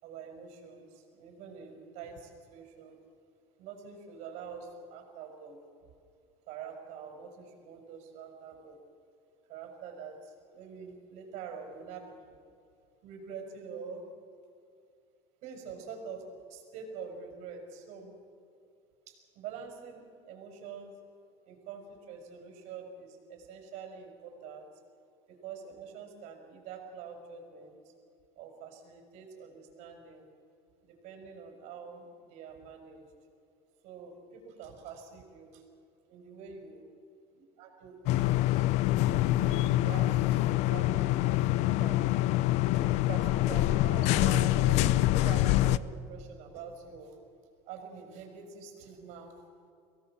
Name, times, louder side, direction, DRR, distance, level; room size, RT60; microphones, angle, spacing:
voice 1, 0.0-3.0 3.6-5.6 6.5-8.8 9.5-12.3 13.0-14.0 15.4-16.2 16.5-18.1 19.1-21.0 21.5-24.7 25.3-27.8 28.4-30.3 30.8-33.1 33.8-35.6 36.1-36.9 37.3-38.7 39.2-42.0 42.7-45.0 45.2-47.1 47.7-49.3, right 6 dB, 65° right, 3 dB, 5.3 m, -45 dB
sound 1, 38.1-45.8, left 15 dB, 60° left, 0.7 m, -25 dB
23.5 x 17.5 x 7.5 m, 2.4 s
cardioid pair, 155°, 13 cm